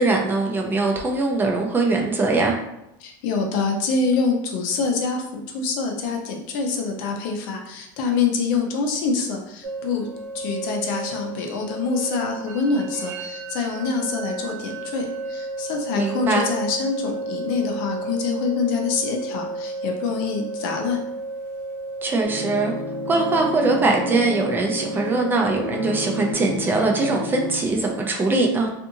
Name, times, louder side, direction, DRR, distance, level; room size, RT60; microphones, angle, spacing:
voice 1, 0.0-2.5 15.9-16.5 22.0-22.7 23.1-28.7, right 3 dB, 20° right, 1 dB, 0.4 m, -21 dB
voice 2, 3.0-10.1 10.3-21.0, left 4 dB, 70° left, 2 dB, 0.6 m, -25 dB
sound 1, 9.6-26.3, right 2 dB, 75° right, 0.7 m, -33 dB
sound 2, 22.2-27.6, left 3 dB, 5° left, 0.9 m, -32 dB
2.5 x 2.5 x 2.7 m, 0.85 s
supercardioid pair, 135°, 11 cm